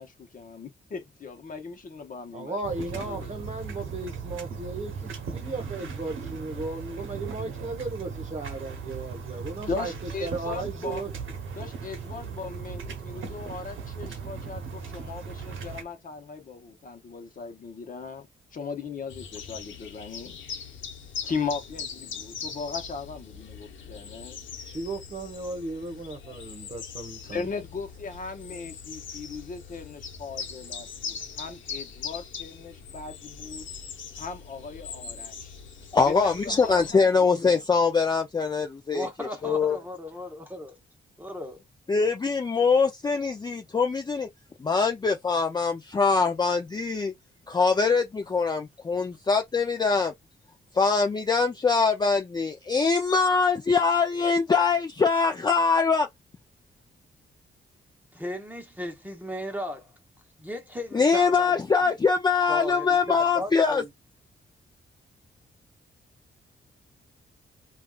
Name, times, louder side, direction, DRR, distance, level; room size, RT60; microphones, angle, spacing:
voice 1, 0.0-3.3 9.7-11.0 11.5-20.4 21.2-24.4 26.2-26.4 27.2-33.7 34.2-35.6 36.1-37.6, left 5 dB, 45° left, 0.9 m, -38 dB
voice 2, 2.3-9.9 10.2-11.1 24.6-27.4, right 3 dB, 35° right, 1.1 m, -35 dB
Orange Field Ambience, 2.6-15.8, right 5 dB, 80° right, 0.8 m, -38 dB
sound 1, 19.1-36.9, left 6 dB, 75° left, 0.9 m, -41 dB
voice 3, 35.9-39.1 39.4-39.8 41.9-44.3 44.6-47.1 47.5-50.1 50.7-56.1 60.9-63.8, left 5 dB, 20° left, 0.4 m, -23 dB
voice 4, 38.9-40.7 41.2-41.6 58.1-59.9 60.4-61.9 62.5-63.9, left 1 dB, 10° right, 0.9 m, -36 dB
3.4 x 2.4 x 2.3 m
cardioid pair, 115°, 20 cm